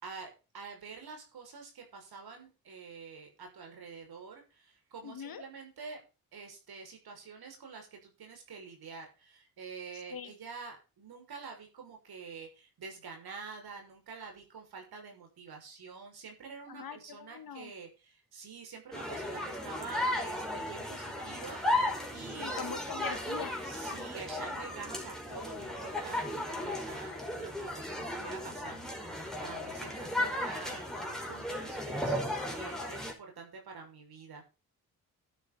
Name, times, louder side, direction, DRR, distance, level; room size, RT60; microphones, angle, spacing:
voice 1, 0.0-6.0 6.3-22.9 23.6-34.5, right 5 dB, 70° right, 3 dB, 6.2 m, -47 dB
voice 2, 5.0-5.4 10.1-10.3 16.7-17.7 22.4-23.5, left 7 dB, 65° left, 8 dB, 2.4 m, -42 dB
sound 1, 18.9-33.1, left 1 dB, ahead, 5.4 m, -35 dB
12.5 x 9.1 x 4.2 m, 0.31 s
supercardioid pair, 50°, 39 cm